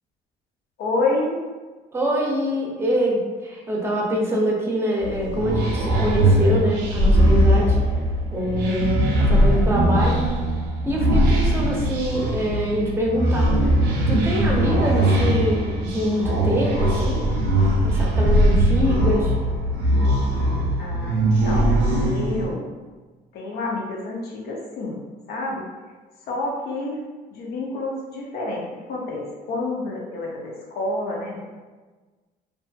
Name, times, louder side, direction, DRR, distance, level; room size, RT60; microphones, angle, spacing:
voice 1, 0.8-1.4 20.8-22.7 23.3-25.0 25.3-25.6 26.2-27.0 27.3-31.4, left 2 dB, 65° left, -1 dB, 0.7 m, -28 dB
voice 2, 1.9-7.8 8.3-10.2 10.8-13.6 14.1-17.2 17.8-19.3, equal, 15° right, -3 dB, 0.6 m, -24 dB
sound 1, 5.0-22.5, right 1 dB, 90° right, 0.6 m, -20 dB
2.5 x 2.5 x 2.3 m, 1.3 s
cardioid pair, 110°, 17 cm